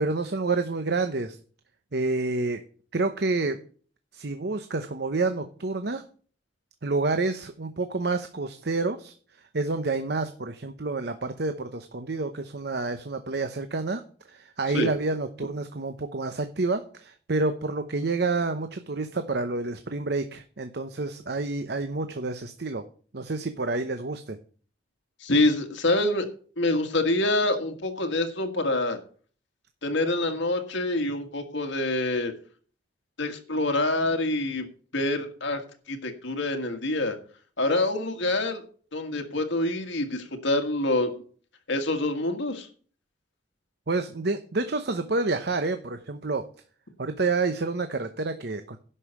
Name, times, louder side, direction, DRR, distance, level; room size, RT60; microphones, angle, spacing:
voice 1, 0.0-1.4 1.9-2.6 2.9-3.6 4.1-6.0 6.8-14.0 14.3-22.8 23.1-24.4 43.9-46.5 47.0-48.8, right 3 dB, 60° right, 8 dB, 0.9 m, -28 dB
voice 2, 25.2-26.3 26.6-29.0 29.8-32.3 33.2-34.7 34.9-35.6 35.9-37.2 37.6-38.6 38.9-41.2 41.7-42.7, left 2 dB, 80° left, 4 dB, 1.8 m, -26 dB
11.0 x 5.6 x 8.2 m, 0.42 s
head